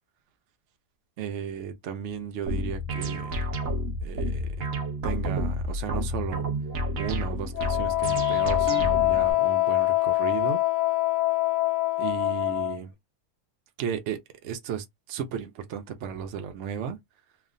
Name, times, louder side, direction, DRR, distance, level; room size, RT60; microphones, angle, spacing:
voice 1, 1.2-3.4 4.0-4.6 5.0-6.4 7.0-10.6 12.0-12.9 13.8-17.0, right 8 dB, 80° right, 0.6 m, -34 dB
sound 1, 2.5-9.3, equal, 60° right, 1.0 m, -30 dB
Wind instrument woodwind instrument, 7.6-12.8, left 17 dB, 85° left, 1.3 m, -24 dB
3.1 x 2.2 x 2.5 m
omnidirectional pair, 1.9 m